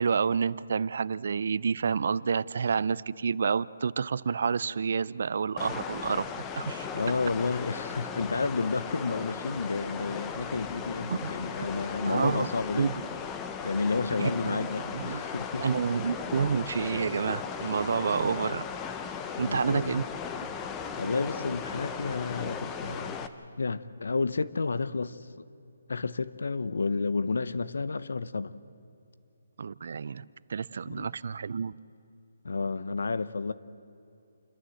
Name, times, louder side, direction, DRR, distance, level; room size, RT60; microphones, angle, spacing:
voice 1, 0.0-6.3 6.6-6.9 11.1-11.3 12.0-12.5 12.7-13.1 14.2-15.2 15.6-18.6 19.4-20.0 29.6-30.2 30.5-31.7, right 6 dB, 50° right, 0.5 m, -29 dB
sound 1, 5.6-23.3, left 6 dB, 10° left, 0.6 m, -37 dB
voice 2, 6.9-12.9 13.6-15.8 19.4-20.0 21.0-23.3 23.6-25.5 25.9-28.6 30.9-31.1 32.4-33.5, left 4 dB, 80° left, 0.8 m, -31 dB
29.0 x 13.0 x 7.8 m
hypercardioid pair, 170°, 0 cm